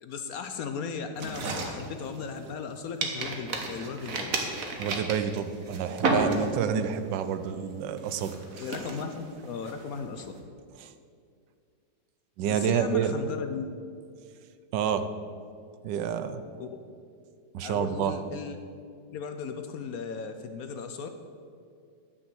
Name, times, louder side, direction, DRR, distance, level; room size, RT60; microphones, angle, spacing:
voice 1, 0.0-4.4 8.6-10.3 12.5-13.7 16.6-16.7 17.6-18.6 19.1-21.1, left 6 dB, 65° left, 7 dB, 0.9 m, -36 dB
sound 1, 1.2-2.6 3.0-6.8 7.1-7.5 8.0-10.3, right 3 dB, 50° right, 1.5 m, -32 dB
voice 2, 4.8-8.4 10.8-10.9 12.4-13.2 14.7-15.1 15.8-16.4 17.5-18.2, right 8 dB, 85° right, 10 dB, 1.3 m, -28 dB
9.8 x 6.2 x 7.6 m, 2.3 s
omnidirectional pair, 1.9 m